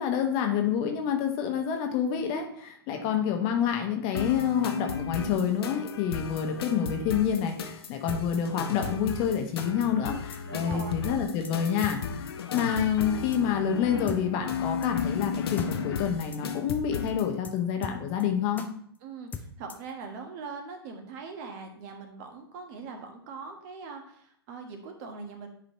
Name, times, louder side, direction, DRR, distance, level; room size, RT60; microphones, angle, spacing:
voice 1, 0.0-18.6, left 8 dB, 40° left, 4 dB, 1.1 m, -28 dB
sound 1, 4.1-17.3, left 6 dB, 65° left, 0.8 m, -34 dB
sound 2, 8.1-8.2 8.8-8.9 9.6-9.7 10.3-10.4 10.7-10.8 11.1-11.2 11.4-11.5 11.8-12.0 12.6-12.7 13.3-13.4 14.1-14.2 14.8-14.9 15.2-15.3 15.6-15.7 16.0-16.1 16.3-16.4 16.7-16.8 17.1-17.2 17.4-17.5 17.8-18.2 18.6-18.7 19.3-19.9, left 6 dB, 10° left, 0.5 m, -39 dB
voice 2, 10.5-10.9 19.0-25.5, right 4 dB, 40° right, 4 dB, 1.3 m, -41 dB
9.9 x 4.1 x 3.0 m, 0.63 s
hypercardioid pair, 115°, 14 cm